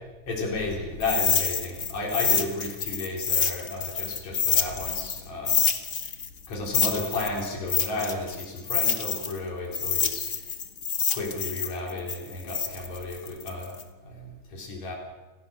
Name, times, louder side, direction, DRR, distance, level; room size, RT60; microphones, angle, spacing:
voice 1, 0.3-5.6 6.5-10.3 11.1-14.9, left 2 dB, 65° left, -1 dB, 5.5 m, -33 dB
sound 1, 1.0-5.2 5.5-9.4 9.7-13.8, left 6 dB, 40° left, 1.3 m, -27 dB
29.0 x 17.0 x 6.5 m, 1.1 s
omnidirectional pair, 3.4 m